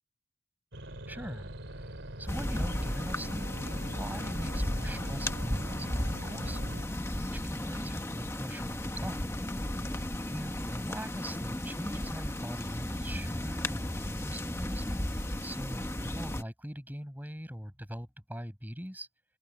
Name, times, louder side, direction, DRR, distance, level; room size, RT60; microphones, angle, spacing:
sound 1, 0.7-6.8, right 1 dB, 65° right, 3.9 m, -42 dB
voice 1, 1.1-9.3 10.3-19.1, equal, 10° right, 6.1 m, -42 dB
sound 2, 2.3-16.4, left 1 dB, 15° left, 1.0 m, -35 dB
open air
head